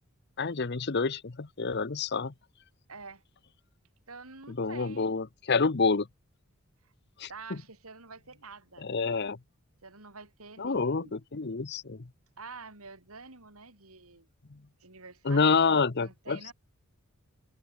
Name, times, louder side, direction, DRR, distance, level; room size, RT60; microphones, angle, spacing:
voice 1, 0.4-2.3 4.5-6.1 7.2-7.6 8.8-9.4 10.6-12.1 15.2-16.5, left 4 dB, 50° left, 0.8 m, -28 dB
voice 2, 2.9-3.2 4.1-5.1 6.8-6.9 7.3-8.9 9.8-11.2 12.4-14.3 14.8-16.5, right 4 dB, 85° right, 5.4 m, -48 dB
head